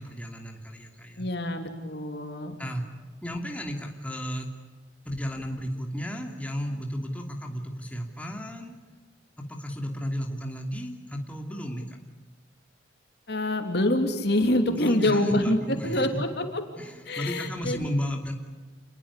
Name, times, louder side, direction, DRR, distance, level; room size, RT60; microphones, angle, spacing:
voice 1, 0.0-1.3 1.8-1.9 2.6-2.8 3.2-4.5 5.0-8.7 9.4-12.0 14.7-16.2 16.8-18.3, equal, 5° left, 2 dB, 2.7 m, -33 dB
voice 2, 1.2-2.6 13.3-15.6 15.8-16.6 17.1-18.0, left 1 dB, 60° left, 6 dB, 3.2 m, -26 dB
28.5 x 21.5 x 8.4 m, 1.4 s
head